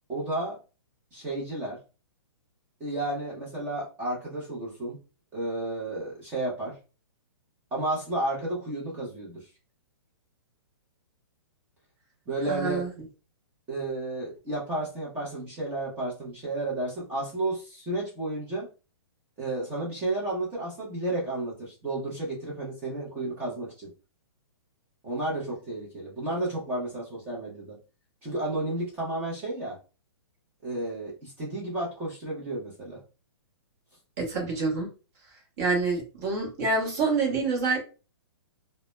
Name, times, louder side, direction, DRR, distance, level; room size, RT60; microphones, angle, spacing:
voice 1, 0.1-0.6 1.1-1.8 2.8-5.0 5.3-6.8 7.7-9.4 12.3-12.9 13.7-18.7 19.4-23.9 25.0-27.8 28.2-29.8 30.6-33.0, right 2 dB, 10° right, -5 dB, 0.5 m, -32 dB
voice 2, 12.5-12.9 34.2-34.9 35.6-37.8, right 4 dB, 35° right, 0 dB, 0.8 m, -27 dB
2.0 x 2.0 x 3.0 m, 0.33 s
hypercardioid pair, 165°, 14 cm